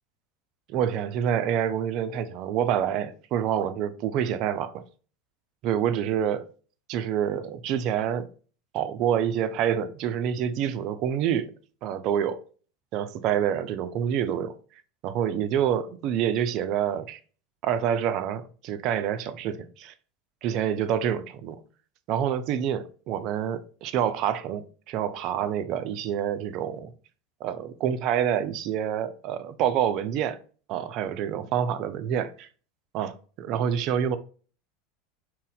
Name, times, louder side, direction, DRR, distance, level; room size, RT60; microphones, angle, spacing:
voice 1, 0.7-4.8 5.6-6.4 6.9-8.3 8.7-11.5 11.8-12.4 12.9-14.6 15.0-17.2 17.6-19.9 20.4-21.6 22.1-26.9 27.4-30.4 30.7-32.5 32.9-33.1 33.4-34.2, right 9 dB, 55° right, 0.3 m, -27 dB
2.6 x 2.1 x 3.9 m
hypercardioid pair, 85°, 0 cm